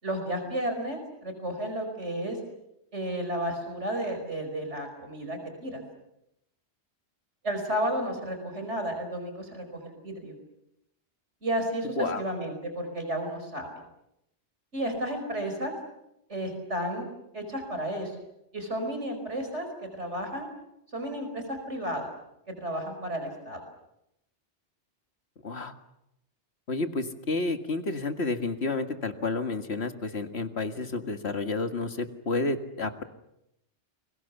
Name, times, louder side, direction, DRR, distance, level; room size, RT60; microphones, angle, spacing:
voice 1, 0.0-2.4 2.9-5.8 7.4-10.3 11.4-13.7 14.7-15.7 16.3-17.1 17.3-18.1 18.5-20.5 20.9-22.1 22.6-23.6, right 1 dB, 80° right, 5 dB, 5.5 m, -32 dB
voice 2, 26.7-33.0, left 3 dB, 65° left, 7 dB, 2.1 m, -30 dB
30.0 x 23.0 x 7.1 m, 0.83 s
omnidirectional pair, 1.2 m